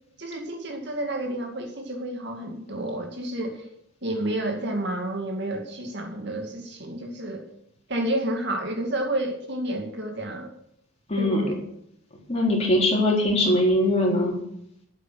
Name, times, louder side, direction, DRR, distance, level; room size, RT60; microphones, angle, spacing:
voice 1, 0.2-3.7 4.0-7.5 7.9-10.5 11.2-11.5, right 1 dB, 50° right, 4 dB, 2.4 m, -30 dB
voice 2, 11.1-11.4 12.3-14.4, left 1 dB, 30° left, -2 dB, 4.0 m, -21 dB
12.5 x 8.4 x 6.5 m, 0.75 s
head